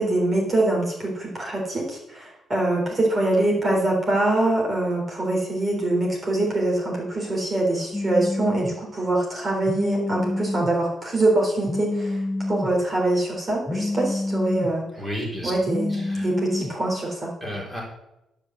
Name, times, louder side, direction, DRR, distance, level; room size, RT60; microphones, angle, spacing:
voice 1, 0.0-12.2 12.5-14.8 15.4-17.3, right 2 dB, 30° right, -2 dB, 3.7 m, -24 dB
Telephone, 7.9-8.7 9.7-10.7 11.7-12.7 13.7-14.7 15.7-16.7, left 2 dB, 10° left, 1.1 m, -27 dB
voice 2, 15.0-15.5 15.9-16.3 17.4-17.8, equal, 15° right, -3 dB, 3.9 m, -32 dB
11.0 x 5.5 x 7.4 m, 0.89 s
cardioid pair, 90°, 0 cm